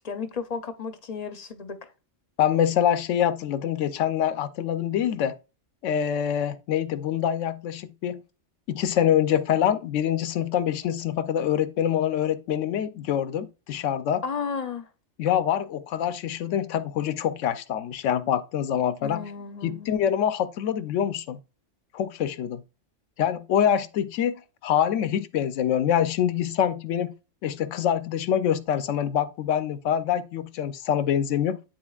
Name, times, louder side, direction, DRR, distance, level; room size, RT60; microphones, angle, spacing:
voice 1, 0.0-1.8 14.2-14.8 19.0-19.9, left 5 dB, 45° left, 0.6 m, -33 dB
voice 2, 2.4-5.3 5.8-8.2 8.7-14.2 15.2-19.3 19.6-21.4 21.9-22.6 23.2-27.1 27.4-31.6, left 9 dB, 85° left, 0.9 m, -25 dB
10.5 x 3.9 x 2.3 m
omnidirectional pair, 1.3 m